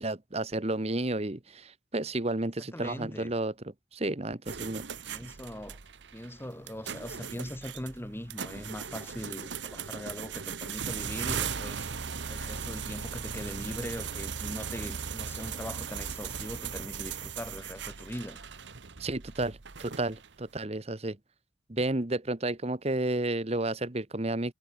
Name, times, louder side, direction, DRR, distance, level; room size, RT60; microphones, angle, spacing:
voice 1, 0.0-3.5 3.9-4.9 19.0-21.2 21.7-24.5, right 2 dB, 35° right, 1.2 m, -31 dB
voice 2, 2.6-3.3 5.1-5.8 6.1-11.9 12.3-18.5, equal, 10° left, 2.0 m, -41 dB
sound 1, 4.5-20.4, right 6 dB, 70° right, 1.1 m, -38 dB
head